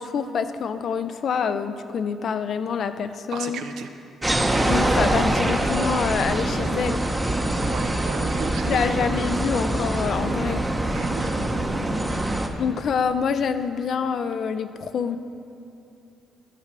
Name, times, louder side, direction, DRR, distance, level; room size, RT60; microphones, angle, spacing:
voice 1, 0.0-3.6 4.7-7.1 8.7-10.6 12.6-15.2, left 6 dB, 60° left, 11 dB, 0.4 m, -26 dB
voice 2, 3.3-3.9 7.7-8.9 10.9-12.4, right 6 dB, 75° right, 7 dB, 0.6 m, -35 dB
sound 1, 4.2-12.5, right 1 dB, 15° right, 0.7 m, -24 dB
12.5 x 4.7 x 5.9 m, 2.6 s
cardioid pair, 90°, 0 cm